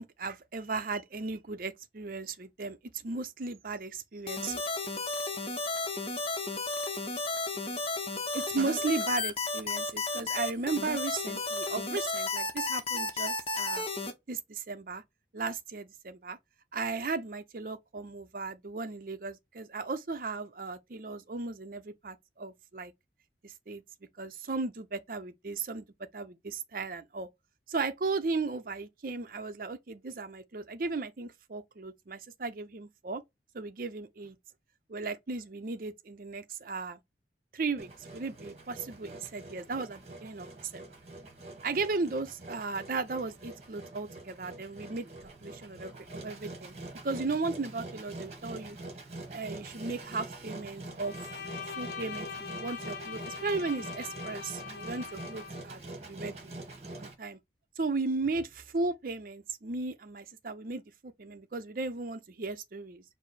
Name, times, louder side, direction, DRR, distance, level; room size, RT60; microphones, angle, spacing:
voice 1, 0.0-4.6 8.3-13.8 14.3-15.0 15.3-16.4 16.7-22.9 23.4-23.8 24.2-25.9 26.1-27.3 27.7-33.2 33.5-34.4 34.9-37.0 37.5-40.9 41.6-45.1 45.4-46.8 47.0-48.8 49.3-51.1 51.8-56.5 56.9-57.4 57.8-63.0, right 3 dB, 50° right, 0.5 m, -36 dB
sound 1, 4.3-14.1, left 3 dB, 35° left, 0.7 m, -33 dB
Engine, 37.8-57.1, right 2 dB, 35° right, 1.1 m, -45 dB
Bowed string instrument, 51.0-55.7, left 6 dB, 90° left, 0.5 m, -42 dB
4.7 x 2.0 x 3.9 m
head